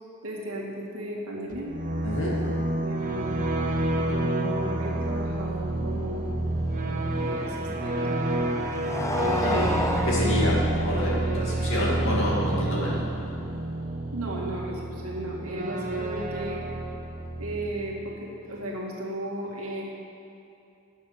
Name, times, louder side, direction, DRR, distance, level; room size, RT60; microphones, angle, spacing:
voice 1, 0.2-1.7 2.8-3.4 3.9-6.3 7.2-8.2 9.3-10.0 14.1-16.6 17.4-19.8, right 1 dB, 90° right, -3 dB, 1.8 m, -35 dB
sound 1, 1.5-18.1, right 2 dB, 40° right, 0.9 m, -29 dB
voice 2, 2.0-2.3 9.4-9.7 10.1-13.0, left 1 dB, 65° left, -5 dB, 2.5 m, -28 dB
Motorcycle, 5.7-13.8, left 2 dB, 15° left, 0.4 m, -33 dB
9.1 x 6.4 x 6.9 m, 2.7 s
head